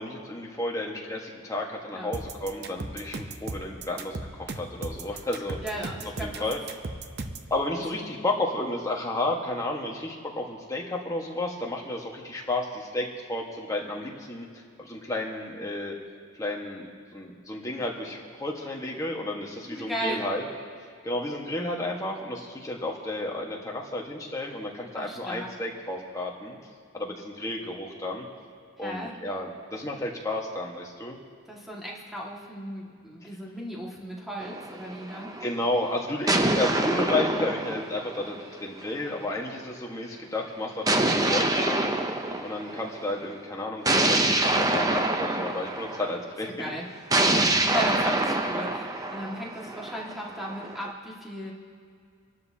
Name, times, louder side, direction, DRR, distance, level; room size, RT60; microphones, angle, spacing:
voice 1, 0.0-5.6 6.2-6.6 7.5-14.5 14.8-16.0 16.4-16.9 17.1-20.4 21.0-26.6 26.9-28.3 28.8-31.2 35.4-41.9 42.4-46.5, left 1 dB, 15° left, -1 dB, 1.4 m, -32 dB
sound 1, 2.1-7.5, right 2 dB, 50° right, 0.7 m, -36 dB
voice 2, 5.6-6.4 19.6-20.2 24.9-25.5 28.8-29.2 31.5-35.3 46.6-46.9 47.5-51.5, equal, ahead, -4 dB, 1.9 m, -36 dB
sound 2, 34.4-35.5 36.3-38.9 40.9-43.0 43.9-46.2 47.1-50.9, right 2 dB, 15° right, 0.6 m, -26 dB
26.5 x 12.0 x 2.8 m, 2.2 s
head